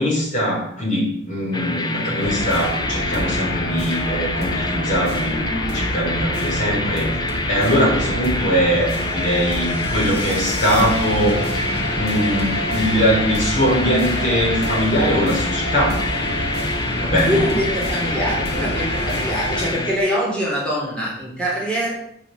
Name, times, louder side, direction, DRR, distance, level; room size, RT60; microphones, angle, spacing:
voice 1, 0.0-7.1 7.5-11.4 11.9-16.1 17.0-17.4, equal, 40° left, -4 dB, 5.3 m, -21 dB
sound 1, 1.5-20.0, left 2 dB, 20° left, 0.7 m, -27 dB
sound 2, 2.2-19.7, equal, 60° left, 2.2 m, -27 dB
voice 2, 17.2-21.9, equal, 5° left, -6 dB, 3.8 m, -24 dB
8.3 x 6.4 x 7.8 m, 0.68 s
head